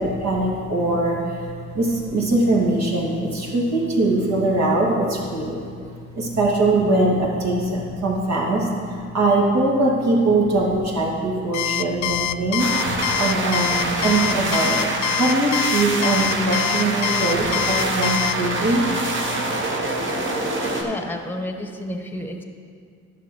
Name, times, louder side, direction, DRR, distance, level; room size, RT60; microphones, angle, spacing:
voice 1, 0.0-5.6 6.2-18.9, right 2 dB, 60° right, -3 dB, 2.4 m, -22 dB
Alarm, 11.5-18.4, left 13 dB, 70° left, 0.4 m, -24 dB
sound 1, 12.6-20.8, right 2 dB, 40° right, 1.5 m, -25 dB
voice 2, 20.7-22.4, left 1 dB, 5° left, 4 dB, 1.2 m, -31 dB
11.5 x 6.3 x 4.5 m, 2.3 s
supercardioid pair, 65°, 30 cm